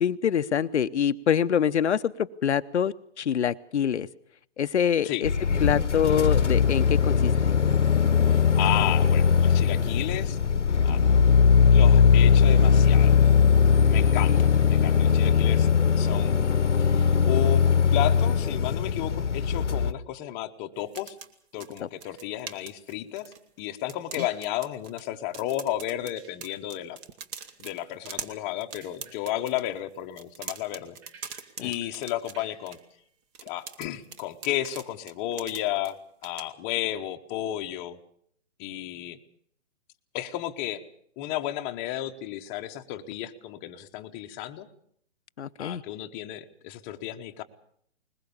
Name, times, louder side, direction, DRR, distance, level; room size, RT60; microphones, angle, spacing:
voice 1, 0.0-4.1 4.6-5.3 5.6-7.5 14.3-14.4 21.8-21.9 24.2-24.3 31.6-31.7 45.4-45.8, left 8 dB, 70° left, 10 dB, 0.8 m, -25 dB
sound 1, 5.2-19.9, left 6 dB, 90° left, 1.2 m, -20 dB
voice 2, 8.3-10.4 10.8-11.0 11.7-13.2 13.9-15.7 16.0-16.4 16.8-17.6 17.9-21.1 21.5-27.0 27.6-31.0 31.2-32.8 33.4-36.0 36.2-38.0 38.6-39.2 40.1-40.8 41.2-44.7 45.6-47.4, left 13 dB, 20° left, 5 dB, 1.1 m, -33 dB
sound 2, 20.8-23.6 23.9-25.1 25.3-29.7 30.1-32.8 33.3-35.9 36.2-36.4, right 6 dB, 25° right, 1.4 m, -42 dB
21.0 x 20.5 x 7.1 m, 0.67 s
hypercardioid pair, 140°, 35 cm